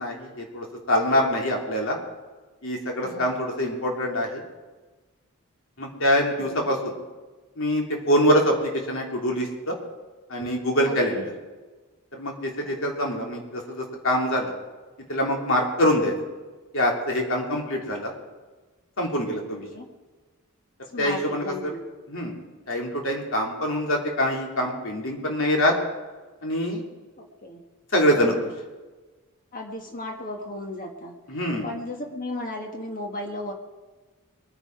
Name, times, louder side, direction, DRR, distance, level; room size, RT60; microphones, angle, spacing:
voice 1, 0.0-2.0 2.6-4.4 5.8-6.9 7.6-9.8 10.3-11.2 12.1-14.5 15.1-16.1 16.7-18.1 19.0-19.7 21.0-21.5 22.1-22.4 22.7-25.7 26.4-26.8 27.9-28.3 31.3-31.7, equal, 65° left, 0 dB, 3.1 m, -24 dB
voice 2, 6.4-6.7 10.8-11.2 12.6-12.8 19.7-19.9 20.9-21.8 27.2-27.6 28.1-28.5 29.5-31.1 31.6-33.5, left 1 dB, 40° left, 3 dB, 1.8 m, -35 dB
23.0 x 9.8 x 4.7 m, 1.3 s
head